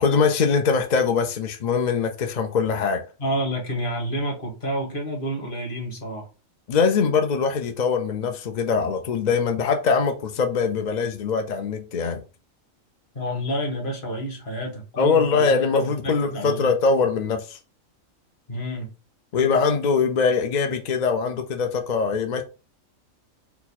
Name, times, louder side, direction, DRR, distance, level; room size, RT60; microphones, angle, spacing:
voice 1, 0.0-3.0 6.7-12.2 15.0-17.6 19.3-22.4, left 5 dB, 60° left, 0.4 m, -22 dB
voice 2, 3.2-6.3 13.1-16.7 18.5-18.9, equal, 40° left, 1.5 m, -29 dB
4.5 x 2.2 x 4.1 m
omnidirectional pair, 1.4 m